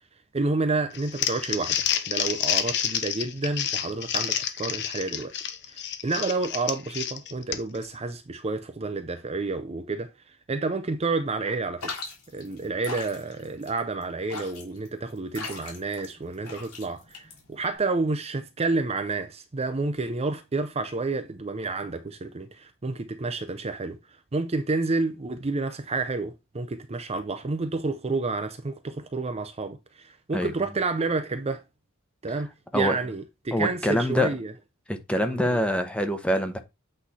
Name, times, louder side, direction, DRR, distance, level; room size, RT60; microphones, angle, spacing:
voice 1, 0.3-5.3 5.7-10.1 10.5-11.9 12.3-24.0 24.3-31.6 32.2-34.5 35.2-35.6, right 3 dB, 30° right, 0.5 m, -30 dB
Crumpling crinkling, 0.9-7.9, left 9 dB, 50° left, 0.8 m, -29 dB
sound 1, 11.8-17.8, left 3 dB, 75° left, 2.8 m, -39 dB
voice 2, 33.5-34.3 34.9-36.6, equal, 5° left, 0.8 m, -25 dB
8.2 x 3.2 x 4.1 m
head